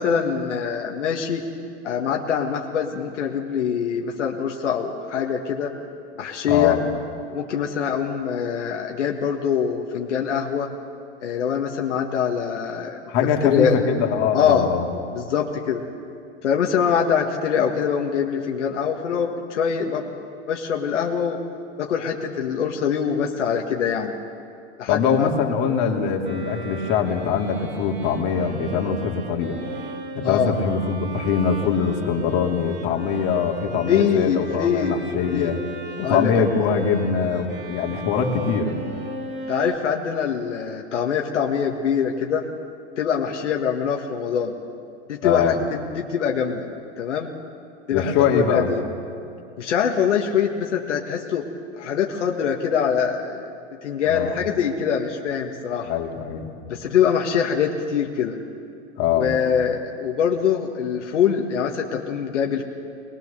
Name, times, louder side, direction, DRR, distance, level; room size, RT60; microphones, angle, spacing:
voice 1, 0.0-1.4 1.8-5.7 6.2-6.8 7.3-10.7 11.2-13.0 13.4-13.8 14.3-14.7 15.1-15.8 16.4-20.1 20.5-21.4 21.8-24.1 24.8-25.3 30.2-30.5 33.9-35.6 36.0-36.3 39.5-42.5 43.0-44.5 45.1-46.7 47.0-47.3 47.9-48.8 49.6-51.5 51.8-53.4 53.8-55.9 56.7-58.4 59.2-62.6, left 7 dB, 85° left, 0 dB, 1.8 m, -24 dB
voice 2, 6.5-6.8 13.1-14.9 24.9-29.6 30.2-35.6 36.0-38.8 45.2-45.6 47.9-48.7 54.1-54.4 55.8-56.5 59.0-59.3, left 6 dB, 45° left, 1 dB, 2.7 m, -22 dB
Bowed string instrument, 26.2-39.8, right 3 dB, 30° right, 2.3 m, -37 dB
21.5 x 20.5 x 6.9 m, 2.5 s
hypercardioid pair, 115°, 35 cm